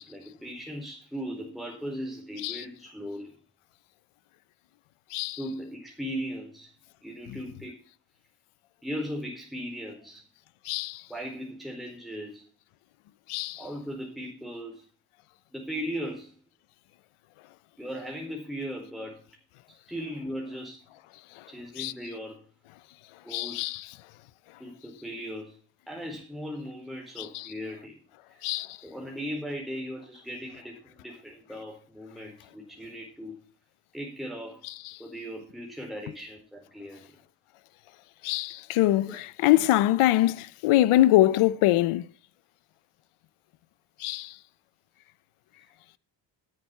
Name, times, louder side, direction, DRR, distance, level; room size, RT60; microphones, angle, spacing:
voice 1, 0.0-3.3 5.4-6.7 7.0-7.8 8.8-10.2 11.1-12.4 13.6-14.8 15.5-16.3 17.8-19.2 19.9-20.8 21.5-22.4 23.2-23.6 24.6-25.6 25.9-28.0 28.3-28.4 28.8-33.4 33.9-34.6 35.0-37.0 39.1-39.2, equal, ahead, 4.6 m, -38 dB
voice 2, 10.7-11.0 13.3-13.6 21.8-21.9 23.3-23.9 27.2-27.5 28.4-28.8 38.2-42.0 44.0-44.3, left 15 dB, 80° left, 0.7 m, -23 dB
13.5 x 7.7 x 5.5 m
supercardioid pair, 50°, 50 cm